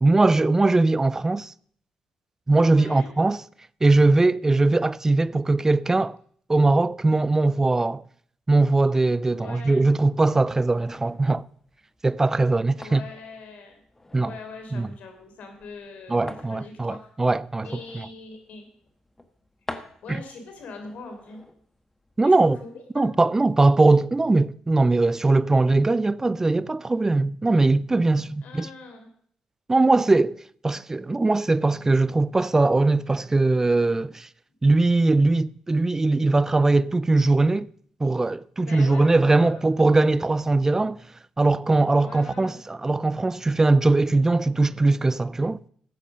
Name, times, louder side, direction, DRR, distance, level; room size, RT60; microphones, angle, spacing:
voice 1, 0.0-1.5 2.5-3.4 3.8-6.2 6.5-8.0 8.5-11.4 12.0-13.0 14.1-14.3 14.7-14.9 16.1-17.8 20.1-20.2 22.2-22.6 23.0-28.7 29.7-30.4 30.6-34.3 34.6-37.7 38.0-41.0 41.4-45.6, right 2 dB, 20° right, 0.4 m, -20 dB
voice 2, 2.6-3.1 9.3-9.9 12.7-13.8 14.1-17.1 17.6-18.7 20.0-21.4 22.2-23.1 28.4-29.1 38.6-39.6 42.0-42.6, left 4 dB, 75° left, 3.6 m, -42 dB
sound 1, 10.8-22.6, left 2 dB, 15° left, 1.4 m, -47 dB
14.0 x 8.2 x 6.3 m
cardioid pair, 80°, 2 cm